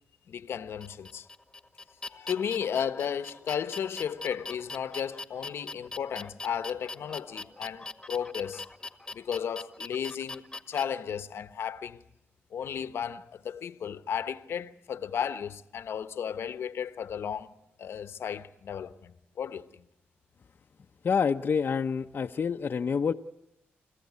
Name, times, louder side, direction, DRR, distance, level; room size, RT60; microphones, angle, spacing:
voice 1, 0.3-1.3 2.1-8.6 9.1-10.4 10.7-12.0 12.5-17.5 17.8-19.7, left 8 dB, 75° left, 1.1 m, -34 dB
sound 1, 0.8-10.8, left 3 dB, 15° left, 1.8 m, -41 dB
voice 2, 21.0-23.1, left 6 dB, 50° left, 0.8 m, -27 dB
30.0 x 15.5 x 9.6 m
cardioid pair, 75°, 4 cm